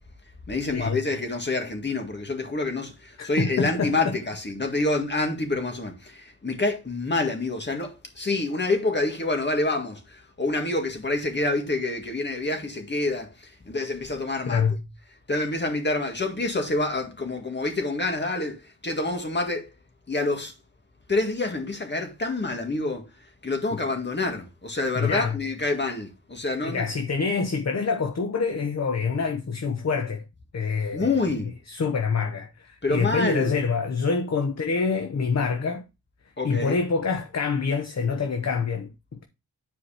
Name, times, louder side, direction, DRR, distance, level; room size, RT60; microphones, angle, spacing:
voice 1, 0.5-14.6 15.3-19.7 20.1-20.5 21.1-23.1 23.4-26.8 30.9-31.5 32.8-33.5 36.4-36.8, left 2 dB, 30° left, 1.9 m, -27 dB
voice 2, 3.2-4.2 14.4-14.8 23.7-23.8 25.0-25.4 26.6-30.2 30.5-31.1 31.7-35.8 36.4-39.2, left 5 dB, 45° left, 0.9 m, -26 dB
10.0 x 4.7 x 3.4 m
wide cardioid pair, 120°, 38 cm